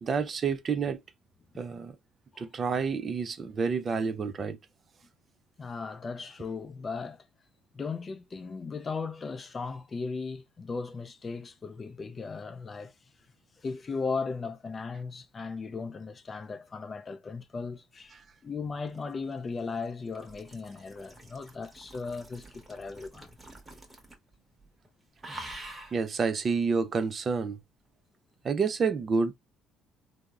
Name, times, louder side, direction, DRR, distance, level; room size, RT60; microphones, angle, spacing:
voice 1, 0.0-1.0 1.6-1.9 2.4-4.6 25.9-27.6 28.4-29.3, right 5 dB, 40° right, 0.4 m, -29 dB
voice 2, 5.6-7.2 7.7-12.9 13.6-18.1 18.4-23.3, left 4 dB, 30° left, 0.3 m, -37 dB
sound 1, 18.6-24.3 24.6-24.9 25.2-26.0 27.0-27.1, right 1 dB, 15° right, 0.9 m, -47 dB
3.3 x 2.0 x 2.3 m
cardioid pair, 100°, 0 cm